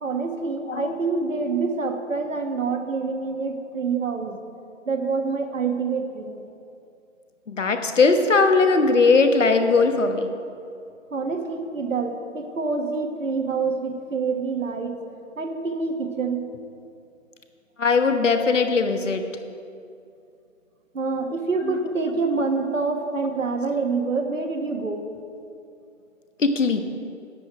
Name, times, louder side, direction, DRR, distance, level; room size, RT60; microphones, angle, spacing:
voice 1, 0.0-4.4 4.9-6.4 11.1-15.0 15.4-16.5 20.9-25.1, right 4 dB, 75° right, 5 dB, 1.3 m, -26 dB
voice 2, 7.5-10.3 17.8-19.2 21.6-21.7 26.4-26.8, left 4 dB, 70° left, 6 dB, 1.2 m, -19 dB
10.5 x 9.6 x 4.9 m, 2.5 s
figure-of-eight pair, 155°, 39 cm